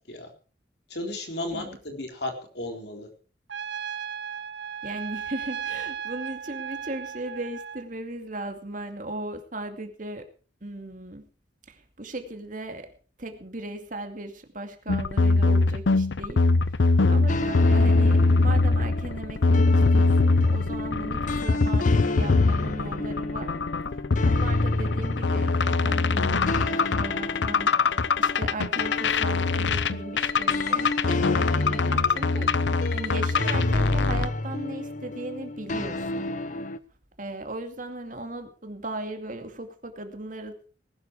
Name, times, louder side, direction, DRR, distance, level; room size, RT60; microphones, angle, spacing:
voice 1, 0.9-3.1 23.9-24.0, left 1 dB, 65° left, 4 dB, 3.9 m, -34 dB
Trumpet, 3.5-7.8, right 8 dB, 90° right, 1.3 m, -35 dB
voice 2, 4.8-10.3 10.6-11.3 11.7-12.9 13.2-19.6 19.9-23.5 24.2-36.2 37.2-40.6, right 2 dB, 50° right, 6 dB, 2.4 m, -37 dB
sound 1, 14.9-34.3, left 3 dB, 85° left, 0.7 m, -22 dB
sound 2, 17.3-36.8, left 2 dB, 45° left, 0.8 m, -32 dB
19.5 x 12.0 x 4.7 m, 0.39 s
head